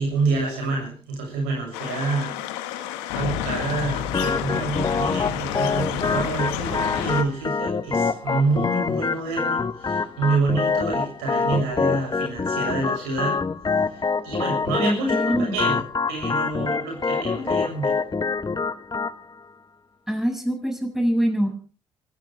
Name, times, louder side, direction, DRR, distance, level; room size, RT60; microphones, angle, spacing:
voice 1, 0.0-2.4 2.6-13.4 13.7-15.8 16.1-18.0, right 3 dB, 85° right, 1 dB, 7.0 m, -27 dB
sound 1, 1.7-7.2, left 10 dB, 85° left, 1.6 m, -29 dB
Organ, 4.1-19.1, left 4 dB, 30° left, 1.2 m, -26 dB
voice 2, 14.8-15.6 20.1-21.5, equal, 5° right, 4 dB, 6.7 m, -24 dB
26.5 x 13.5 x 3.4 m, 0.35 s
hypercardioid pair, 45°, 13 cm